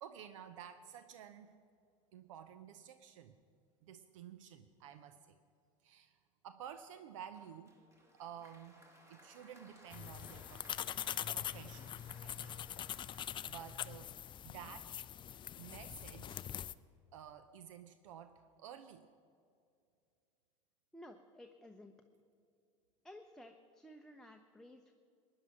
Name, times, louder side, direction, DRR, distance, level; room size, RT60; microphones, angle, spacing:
voice 1, 0.0-1.5 2.1-3.4 3.8-5.4 5.8-6.2 6.4-7.7 8.1-8.8 9.1-10.7 11.3-12.6 13.1-14.1 14.4-14.9 15.6-16.5 17.1-19.0, right 9 dB, 75° right, 11 dB, 0.7 m, -52 dB
Applause, 7.3-14.5, right 1 dB, 15° right, 2.1 m, -62 dB
sound 1, 9.9-16.7, left 10 dB, 30° left, 0.4 m, -43 dB
voice 2, 20.9-21.9 23.0-24.9, left 1 dB, 5° left, 3 dB, 0.8 m, -55 dB
17.0 x 10.5 x 5.9 m, 2.4 s
hypercardioid pair, 85°, 16 cm